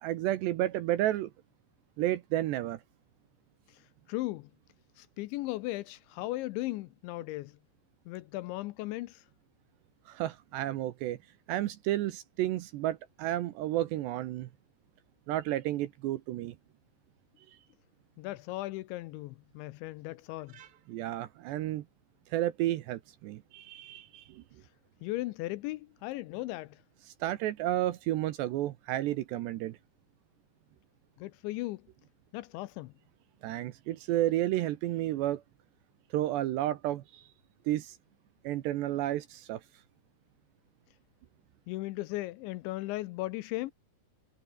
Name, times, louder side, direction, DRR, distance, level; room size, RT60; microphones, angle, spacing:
voice 1, 0.0-1.3 2.0-2.8 10.1-11.2 11.5-14.5 15.3-16.6 20.5-21.8 22.3-24.4 27.2-29.8 33.4-35.4 36.1-37.3 37.7-38.0 38.4-39.6, right 14 dB, 75° right, 2.7 m, -31 dB
voice 2, 3.7-4.5 5.0-7.6 8.1-9.3 18.2-20.6 25.0-26.8 31.2-31.9 32.3-32.9 41.7-43.7, left 18 dB, 80° left, 2.7 m, -37 dB
omnidirectional pair, 5.9 m